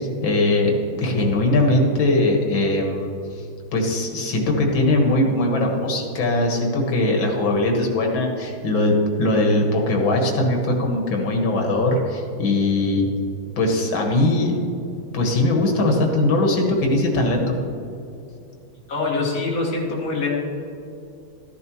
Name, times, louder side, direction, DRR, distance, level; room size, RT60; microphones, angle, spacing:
voice 1, 0.2-3.1 3.7-13.1 13.6-14.5 15.1-17.4, left 2 dB, 80° left, 1 dB, 2.3 m, -20 dB
voice 2, 18.9-20.3, left 3 dB, 50° left, -4 dB, 2.4 m, -24 dB
13.5 x 10.5 x 3.0 m, 2.6 s
omnidirectional pair, 2.1 m